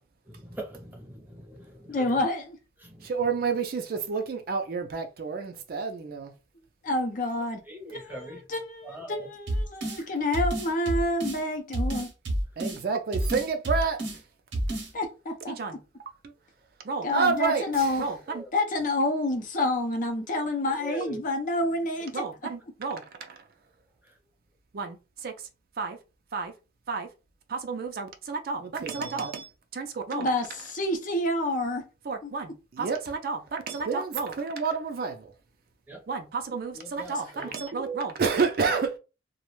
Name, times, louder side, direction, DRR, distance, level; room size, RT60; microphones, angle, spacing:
voice 1, 0.3-2.2 2.8-3.1 7.7-8.4 8.8-9.3 18.3-18.5 20.7-21.2 24.0-24.2 35.9-36.0 36.7-37.5, right 1 dB, 10° right, 0.6 m, -41 dB
voice 2, 1.9-2.6 6.8-7.6 7.9-8.8 9.1-12.1 14.9-15.8 17.0-18.0 18.5-22.3 30.1-31.8 32.2-32.3 37.4-37.5, left 1 dB, 45° left, 0.5 m, -28 dB
voice 3, 3.0-6.3 12.6-14.0 15.6-15.8 16.8-18.4 22.1-23.4 24.7-25.3 25.8-26.0 26.3-26.5 26.9-27.1 27.5-30.3 32.1-35.3 36.1-39.0, right 5 dB, 50° right, 0.4 m, -30 dB
sound 1, 9.5-10.0 10.3-11.4 11.7-12.8 13.1-14.2 14.5-14.9, right 1 dB, 90° right, 0.8 m, -29 dB
2.3 x 2.1 x 3.0 m
head